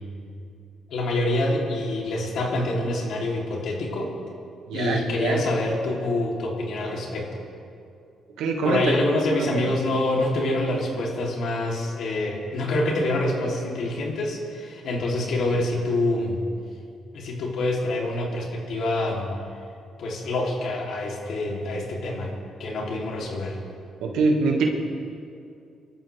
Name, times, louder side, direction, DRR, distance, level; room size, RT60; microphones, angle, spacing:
voice 1, 0.9-4.1 4.7-7.3 8.6-16.4 17.1-19.3 20.0-23.6, left 1 dB, 70° left, -2 dB, 3.5 m, -26 dB
voice 2, 4.7-5.4 8.4-8.8 9.4-9.7 24.0-24.7, right 4 dB, 90° right, 1 dB, 2.1 m, -24 dB
25.0 x 13.5 x 3.6 m, 2.5 s
cardioid pair, 90°, 0 cm